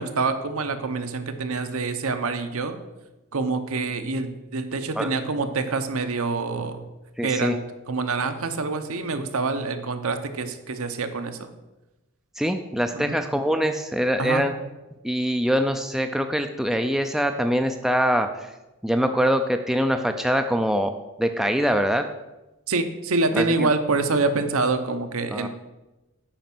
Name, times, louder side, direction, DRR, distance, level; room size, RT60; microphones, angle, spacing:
voice 1, 0.0-2.8 3.3-6.8 7.2-11.5 12.9-13.0 14.2-14.4 22.7-25.5, right 3 dB, 75° right, 8 dB, 0.8 m, -26 dB
voice 2, 7.2-7.6 12.4-14.5 15.0-18.5 18.8-20.9 21.2-22.1 23.3-23.7 25.3-25.5, equal, ahead, 6 dB, 0.3 m, -23 dB
9.0 x 5.2 x 6.0 m, 1.0 s
head